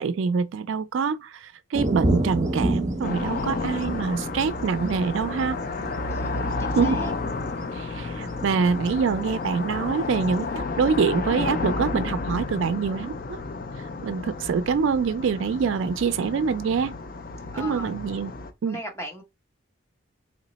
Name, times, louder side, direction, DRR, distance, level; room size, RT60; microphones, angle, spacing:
voice 1, 0.0-5.6 6.8-7.0 7.8-13.4 14.0-16.9 17.6-18.3 18.6-18.8, right 5 dB, 70° right, 0.3 m, -25 dB
sound 1, 1.7-8.5 8.9-9.0 10.1-10.6, right 1 dB, 35° right, 0.7 m, -29 dB
sound 2, 3.0-18.5, left 3 dB, 45° left, 0.4 m, -31 dB
voice 2, 6.1-7.1 17.5-17.9 18.7-19.2, equal, 15° left, 0.7 m, -37 dB
3.0 x 2.1 x 3.9 m
head